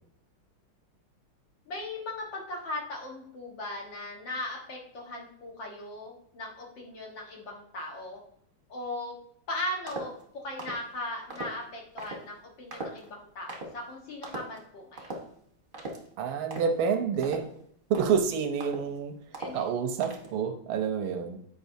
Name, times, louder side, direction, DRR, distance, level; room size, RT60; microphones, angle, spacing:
voice 1, 1.7-8.2 8.7-9.2 9.5-15.2 19.4-19.6, left 1 dB, 65° left, -1 dB, 2.1 m, -38 dB
sound 1, 9.9-10.2 10.6-10.9 11.3-11.6 12.0-12.2 12.7-13.1 13.5-13.7 14.2-14.6 15.0-15.3 15.7-16.1 16.5-16.8 17.2-17.6 17.9-18.2 18.6-19.0 19.3-19.7 20.0-20.3, right 1 dB, 35° right, 0.9 m, -39 dB
voice 2, 16.2-17.5 17.9-19.1 19.5-21.4, right 6 dB, 85° right, 5 dB, 1.5 m, -28 dB
8.1 x 5.4 x 2.6 m, 0.66 s
omnidirectional pair, 2.2 m